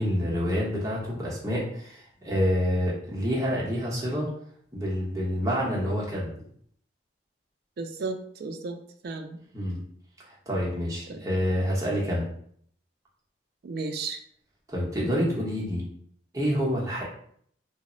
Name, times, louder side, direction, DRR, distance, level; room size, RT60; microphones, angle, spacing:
voice 1, 0.0-4.3 4.7-6.3 9.5-9.8 10.3-12.3 14.7-15.8 16.3-17.0, equal, 20° right, -5 dB, 0.7 m, -27 dB
voice 2, 7.8-8.8 9.0-9.4 11.1-11.3 13.6-14.2, right 3 dB, 55° right, 6 dB, 0.3 m, -34 dB
2.0 x 2.0 x 3.7 m, 0.64 s
head